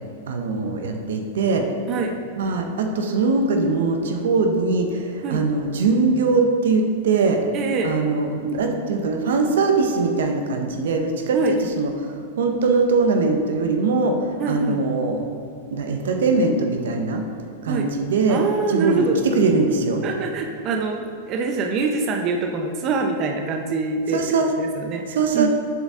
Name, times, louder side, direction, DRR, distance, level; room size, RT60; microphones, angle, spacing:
voice 1, 0.3-1.7 2.4-7.4 7.8-15.2 15.7-17.2 17.6-18.4 18.7-19.1 19.3-20.0 24.1-24.5 25.1-25.5, right 3 dB, 75° right, 4 dB, 0.7 m, -21 dB
voice 2, 7.5-7.9 11.3-11.6 14.4-14.8 17.7-17.9 18.3-19.2 20.0-24.2 24.6-25.5, right 4 dB, 40° right, 4 dB, 0.5 m, -24 dB
7.1 x 4.0 x 3.6 m, 2.4 s
hypercardioid pair, 120°, 0 cm